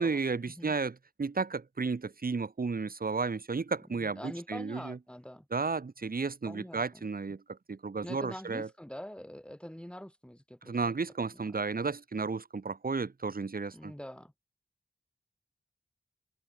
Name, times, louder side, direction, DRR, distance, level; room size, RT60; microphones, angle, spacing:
voice 1, 0.0-5.0 5.5-8.7 10.6-13.9, right 4 dB, 50° right, 0.9 m, -33 dB
voice 2, 3.9-5.5 6.4-7.1 8.0-10.8 13.7-14.3, equal, 5° left, 1.9 m, -45 dB
open air
wide cardioid pair, 45°, 19 cm